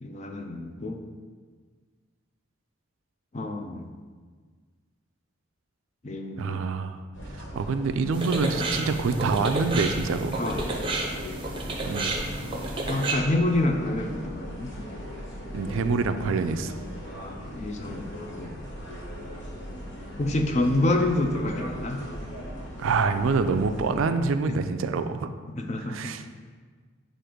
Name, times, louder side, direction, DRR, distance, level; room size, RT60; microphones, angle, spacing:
voice 1, 0.0-1.0 3.3-3.9 6.0-6.6 10.3-11.0 12.9-14.9 17.1-18.1 18.3-18.5 20.2-22.1 25.6-26.1, left 2 dB, 35° left, 4 dB, 0.4 m, -28 dB
voice 2, 6.4-7.0 7.3-10.4 11.8-12.1 15.5-16.8 22.8-25.3 25.8-26.3, right 4 dB, 75° right, 9 dB, 0.3 m, -26 dB
sound 1, 7.1-24.0, equal, 60° left, 1.0 m, -39 dB
sound 2, 8.1-13.1, right 2 dB, 25° right, 0.6 m, -31 dB
7.6 x 2.5 x 5.0 m, 1.5 s
head